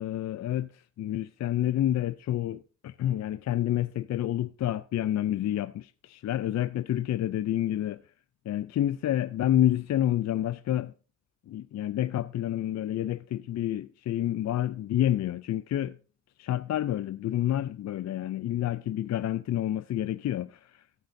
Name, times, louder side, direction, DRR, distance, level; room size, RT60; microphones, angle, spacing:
voice 1, 0.0-8.0 8.5-10.9 11.5-16.0 16.4-20.8, left 12 dB, 65° left, 0.4 m, -29 dB
14.5 x 9.3 x 2.6 m
cardioid pair, 105°, 30 cm